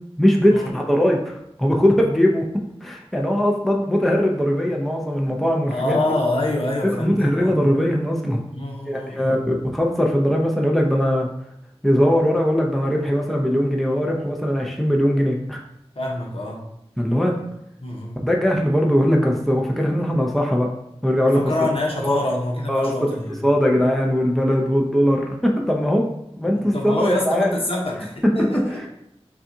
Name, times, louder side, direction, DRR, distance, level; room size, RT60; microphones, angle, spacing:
voice 1, 0.2-2.5 2.8-6.0 6.8-8.4 8.9-11.3 11.8-15.6 17.0-17.3 18.2-20.7 21.0-21.4 22.0-22.2 22.7-23.1 23.4-26.1 26.4-27.5, equal, ahead, 0 dB, 0.6 m, -20 dB
voice 2, 5.7-7.6 8.5-9.5 16.0-16.6 17.8-18.2 21.2-23.4 26.5-28.9, left 1 dB, 60° left, -2 dB, 0.9 m, -26 dB
5.5 x 2.4 x 2.7 m, 0.81 s
wide cardioid pair, 60°, 11 cm